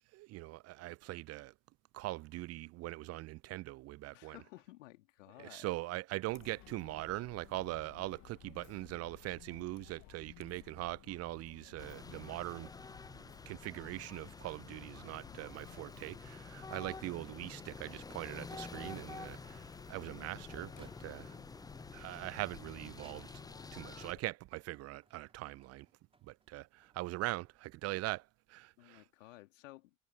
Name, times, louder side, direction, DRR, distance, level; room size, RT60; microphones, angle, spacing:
voice 1, 0.1-1.5 1.9-4.4 5.4-12.7 13.5-21.4 21.9-23.4 23.7-25.9 26.3-29.0, right 19 dB, 40° right, 0.7 m, -42 dB
voice 2, 4.1-5.7 28.8-29.9, left 18 dB, 65° left, 3.0 m, -55 dB
Chatter, 6.3-24.2, left 20 dB, 40° left, 1.1 m, -57 dB
sound 1, 11.8-24.1, left 3 dB, 10° left, 0.9 m, -49 dB
sound 2, 20.7-21.5 22.0-23.7 24.4-28.0, right 3 dB, 15° right, 4.4 m, -67 dB
figure-of-eight pair, 75°, 41 cm